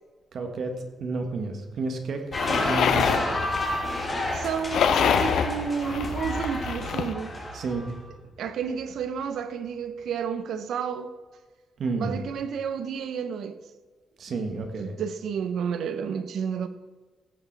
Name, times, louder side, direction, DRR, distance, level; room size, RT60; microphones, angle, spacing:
voice 1, 0.3-3.4 7.5-7.9 11.8-12.2 14.2-14.9, right 3 dB, 50° right, 1.5 m, -31 dB
sound 1, 2.3-7.1, left 8 dB, 70° left, 0.6 m, -27 dB
sound 2, 2.3-7.9, left 1 dB, 20° left, 2.5 m, -31 dB
voice 2, 4.3-7.3 8.4-11.1 12.0-13.6 14.6-16.7, right 7 dB, 70° right, 0.8 m, -31 dB
sound 3, 5.8-10.0, right 4 dB, 90° right, 2.1 m, -42 dB
16.0 x 6.8 x 4.7 m
wide cardioid pair, 170°, 0 cm